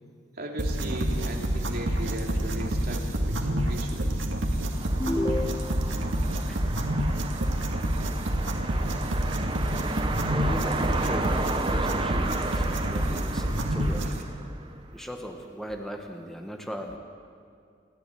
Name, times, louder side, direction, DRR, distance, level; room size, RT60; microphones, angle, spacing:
voice 1, 0.3-4.3, right 1 dB, 50° right, 0 dB, 3.1 m, -37 dB
sound 1, 0.6-14.2, right 1 dB, 85° right, 2.1 m, -28 dB
sound 2, 4.7-15.0, right 2 dB, 25° right, 1.2 m, -33 dB
sound 3, 5.0-6.0, left 1 dB, 20° left, 1.0 m, -30 dB
voice 2, 10.3-14.3 14.9-17.0, equal, ahead, 2 dB, 1.6 m, -38 dB
29.0 x 11.5 x 9.3 m, 2.4 s
head